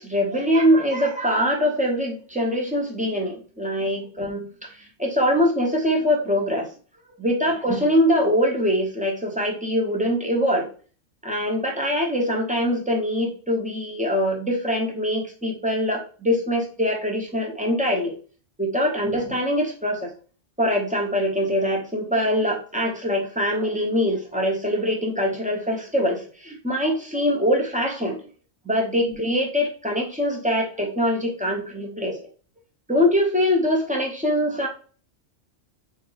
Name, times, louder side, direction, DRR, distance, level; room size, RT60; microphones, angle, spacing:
voice 1, 0.0-6.7 7.2-10.7 11.2-18.1 18.6-20.1 20.6-28.2 28.6-32.2 32.9-34.7, equal, 5° right, -1 dB, 0.7 m, -23 dB
4.1 x 2.6 x 3.9 m, 0.40 s
omnidirectional pair, 1.3 m